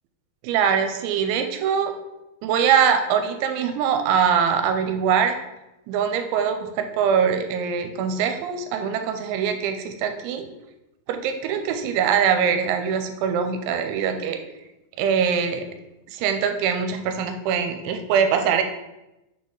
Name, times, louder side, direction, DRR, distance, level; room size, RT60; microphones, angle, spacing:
voice 1, 0.4-1.9 2.4-5.4 5.9-10.5 11.1-14.4 15.0-15.7 16.1-18.6, right 7 dB, 85° right, 6 dB, 2.9 m, -22 dB
6.4 x 4.1 x 3.7 m, 0.94 s
omnidirectional pair, 5.4 m